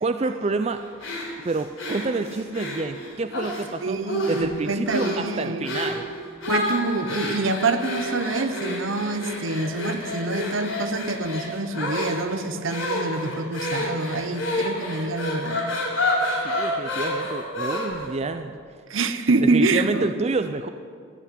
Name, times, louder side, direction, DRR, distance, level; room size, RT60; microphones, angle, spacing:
voice 1, 0.0-0.8 1.4-4.0 4.3-6.1 16.4-18.6 19.5-20.7, right 3 dB, 30° right, 8 dB, 0.4 m, -28 dB
sound 1, 1.0-3.7 4.1-4.5 4.9-5.2 5.6-6.0 6.4-18.1, left 1 dB, 70° left, 4.2 m, -29 dB
voice 2, 3.8-5.7 6.5-15.7 18.9-20.1, right 3 dB, 70° right, 10 dB, 0.9 m, -26 dB
15.5 x 5.9 x 9.8 m, 2.2 s
head